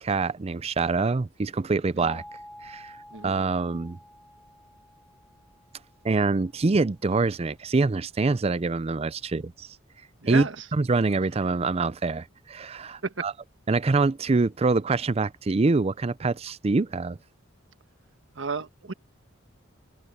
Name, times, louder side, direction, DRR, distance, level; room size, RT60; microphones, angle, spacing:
voice 1, 0.0-2.2 2.6-2.9 3.2-4.0 6.0-9.7 10.3-10.5 10.7-13.3 13.7-17.2, right 3 dB, 30° right, 0.5 m, -25 dB
sound 1, 2.0-6.7, equal, 5° left, 6.2 m, -49 dB
voice 2, 10.2-10.6 13.0-13.2 18.3-18.9, right 4 dB, 65° right, 1.6 m, -32 dB
open air
head